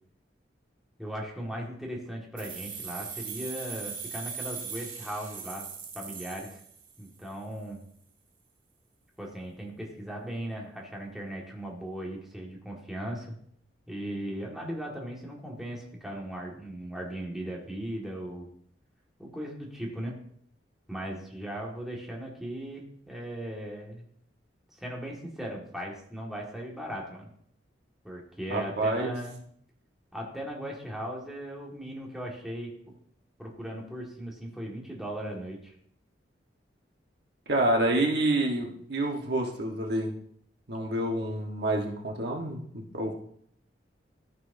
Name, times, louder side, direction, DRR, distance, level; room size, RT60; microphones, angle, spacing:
voice 1, 1.0-5.7 5.9-6.6 7.0-7.9 9.2-13.4 13.9-18.5 19.2-20.2 20.9-24.1 24.8-27.3 28.0-29.4 30.1-32.7 33.4-35.7, right 1 dB, ahead, -2 dB, 1.8 m, -38 dB
sound 1, 2.4-7.2, right 6 dB, 50° right, 1.7 m, -39 dB
voice 2, 28.5-29.1 37.5-40.1 40.7-43.1, right 1 dB, 65° right, 1 dB, 1.3 m, -28 dB
13.5 x 6.2 x 2.7 m, 0.65 s
head